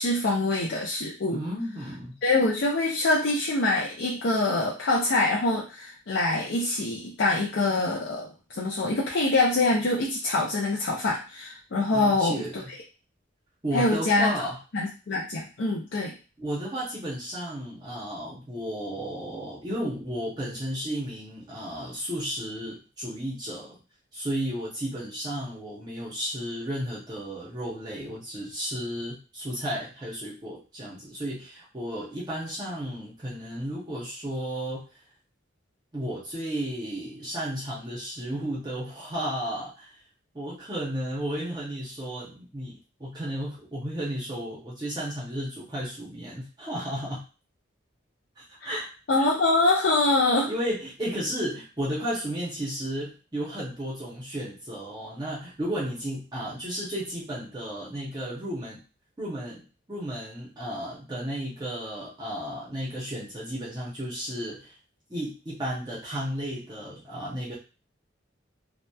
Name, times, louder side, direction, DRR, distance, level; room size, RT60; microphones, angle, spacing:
voice 1, 0.0-1.4 2.2-12.6 13.7-14.3 14.7-16.1 48.7-48.8 49.1-50.5, left 2 dB, 65° left, -3 dB, 0.4 m, -25 dB
voice 2, 1.3-2.1 11.9-12.7 13.6-14.6 16.4-23.8 24.1-34.8 35.9-39.9 40.3-47.2 48.4-48.9 49.2-49.3 50.5-58.8 59.2-59.6 59.9-64.7 65.1-67.5, equal, 20° right, -6 dB, 0.6 m, -33 dB
2.7 x 2.2 x 2.2 m, 0.33 s
head